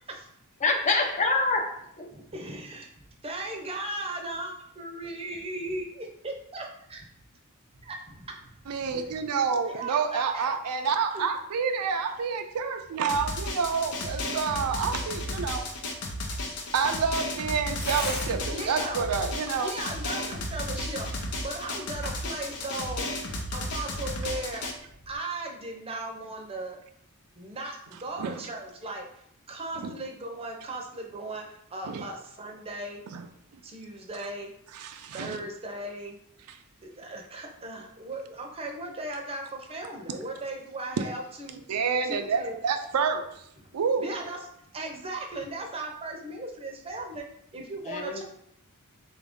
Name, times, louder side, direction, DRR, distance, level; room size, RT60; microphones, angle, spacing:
voice 1, 0.6-2.1 47.8-48.2, left 3 dB, 30° left, 2 dB, 0.5 m, -26 dB
voice 2, 2.1-2.9 3.2-7.1 7.7-9.2 9.7-10.5 11.1-11.2 17.0-17.1 18.4-19.1 19.6-21.1 21.4-23.0 23.5-24.7 25.1-26.8 27.4-33.0 33.6-34.5 35.1-36.2 36.8-42.6 43.6-43.7 44.0-47.2 47.5-48.2, right 2 dB, 25° right, 2 dB, 0.6 m, -37 dB
voice 3, 8.7-15.7 16.7-19.7 28.2-28.3 29.8-29.9 31.9-32.0 33.1-33.3 34.8-35.4 41.7-43.2 43.7-44.1, right 5 dB, 80° right, 6 dB, 0.4 m, -28 dB
Drum, 13.1-24.7, left 1 dB, 90° left, 0.6 m, -34 dB
Tearing, 13.6-25.2, left 1 dB, 50° left, 0.9 m, -45 dB
3.8 x 2.5 x 3.5 m, 0.73 s
head